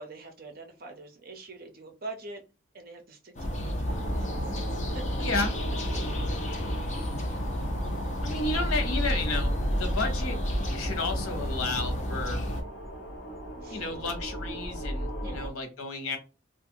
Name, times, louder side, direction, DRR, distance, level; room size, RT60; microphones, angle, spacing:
voice 1, 0.0-2.4 2.7-3.9 4.9-5.0 13.6-13.8 15.2-15.6, right 2 dB, 45° right, 0.7 m, -44 dB
sound 1, 3.4-12.6, equal, 35° left, 0.6 m, -32 dB
sound 2, 3.8-15.5, equal, 65° left, 1.1 m, -35 dB
voice 2, 5.2-5.5 8.2-10.4 10.7-12.4 13.7-16.2, left 3 dB, 90° left, 0.9 m, -32 dB
2.7 x 2.4 x 2.7 m
head